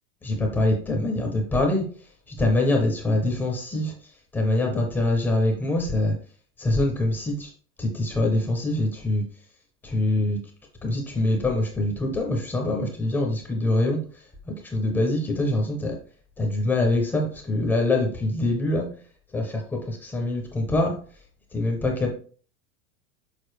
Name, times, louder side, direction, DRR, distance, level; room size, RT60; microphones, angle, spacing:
voice 1, 0.2-1.8 2.4-3.9 4.3-6.1 6.6-7.5 7.8-9.2 9.8-10.4 10.8-14.0 14.5-15.9 16.4-18.9 19.3-20.9 21.5-22.1, left 2 dB, 5° left, 1 dB, 0.4 m, -24 dB
6.7 x 4.6 x 3.0 m, 0.42 s
supercardioid pair, 175°, 37 cm